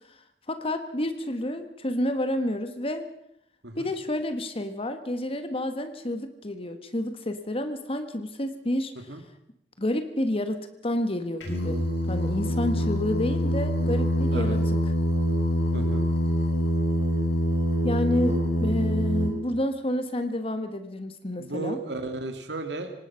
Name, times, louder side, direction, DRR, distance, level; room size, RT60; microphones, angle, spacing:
voice 1, 0.5-3.0 3.8-8.9 9.8-11.8 12.1-14.6 17.8-21.8, left 1 dB, 30° left, 9 dB, 1.4 m, -29 dB
Singing, 11.4-19.3, equal, 90° left, 7.2 m, -25 dB
voice 2, 15.7-16.1 21.4-22.9, right 2 dB, 75° right, 6 dB, 2.3 m, -34 dB
25.5 x 18.5 x 5.8 m, 0.77 s
head